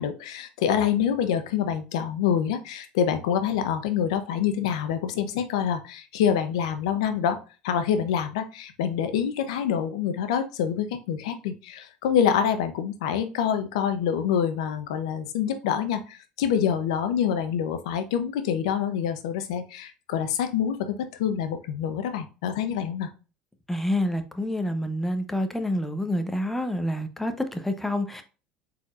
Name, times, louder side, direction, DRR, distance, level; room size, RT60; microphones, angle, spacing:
voice 1, 0.0-7.4 7.6-23.1, left 8 dB, 90° left, 0.7 m, -26 dB
voice 2, 23.7-28.2, left 1 dB, 5° left, 0.8 m, -28 dB
4.2 x 4.0 x 2.4 m
supercardioid pair, 95°, 3 cm